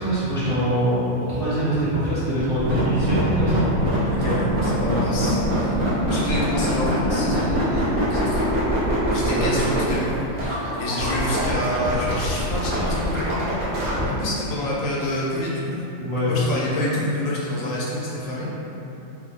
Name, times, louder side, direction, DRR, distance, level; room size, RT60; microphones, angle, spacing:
voice 1, 0.0-4.2 9.3-9.5 16.0-16.3, right 1 dB, 45° right, -13 dB, 0.4 m, -24 dB
sound 1, 2.4-14.0, equal, 80° right, 1.2 m, -23 dB
voice 2, 4.1-5.8 6.1-7.8 8.1-8.5 9.1-13.3 14.0-15.9 16.1-18.6, left 1 dB, 85° left, -6 dB, 1.1 m, -28 dB
3.3 x 2.0 x 3.4 m, 3.0 s
omnidirectional pair, 1.3 m